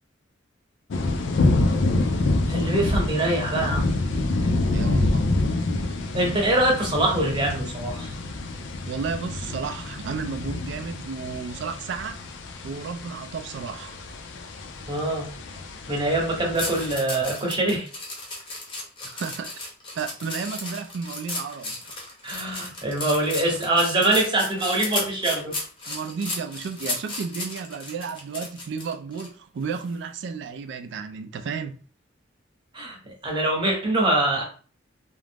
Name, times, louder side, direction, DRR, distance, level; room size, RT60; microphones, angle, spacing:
sound 1, 0.9-17.0, left 2 dB, 65° left, 0.4 m, -27 dB
voice 1, 2.5-3.9 4.4-4.5 6.1-8.1 14.9-15.3 15.9-17.9 22.2-25.5 32.7-34.4, right 2 dB, 25° right, 0.8 m, -24 dB
voice 2, 4.7-5.2 8.8-12.2 12.6-14.0 19.0-19.6 19.9-22.0 25.9-31.8, right 5 dB, 60° right, 0.3 m, -33 dB
sound 2, 16.5-29.3 29.7-29.9, left 2 dB, 25° left, 0.7 m, -34 dB
2.4 x 2.0 x 3.3 m
head